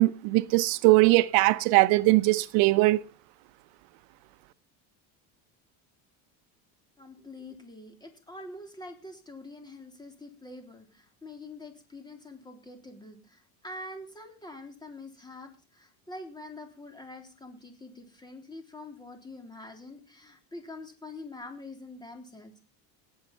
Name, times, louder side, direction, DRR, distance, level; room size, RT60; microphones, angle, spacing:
voice 1, 0.0-3.0, right 20 dB, 85° right, 0.9 m, -21 dB
voice 2, 7.0-22.7, left 2 dB, 10° left, 3.4 m, -45 dB
17.5 x 8.3 x 5.4 m
cardioid pair, 135°, 41 cm